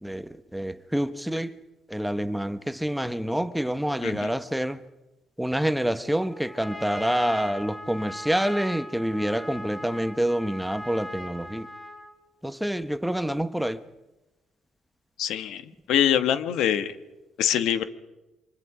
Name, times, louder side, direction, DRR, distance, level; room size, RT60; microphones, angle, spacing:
voice 1, 0.0-1.6 1.9-4.8 5.4-11.7 12.4-13.8, equal, 5° right, 0.9 m, -27 dB
Trumpet, 6.2-12.2, left 1 dB, 20° left, 3.2 m, -39 dB
voice 2, 15.2-15.6 15.9-16.9 17.4-17.9, left 10 dB, 85° left, 1.4 m, -24 dB
29.0 x 25.5 x 5.0 m
cardioid pair, 120°, 0 cm